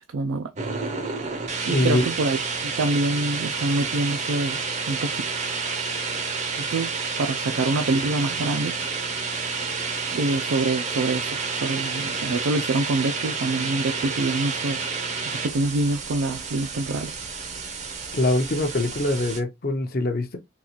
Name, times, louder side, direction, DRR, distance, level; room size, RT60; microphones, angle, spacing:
voice 1, 0.1-0.5 1.7-4.6 4.9-5.2 6.6-8.8 10.1-14.8 15.2-17.1, right 2 dB, 75° right, 0.4 m, -26 dB
sound 1, 0.6-19.4, right 4 dB, 35° right, 0.6 m, -30 dB
voice 2, 1.7-2.0 18.1-20.4, left 2 dB, 45° left, 0.7 m, -23 dB
3.9 x 2.4 x 2.9 m
head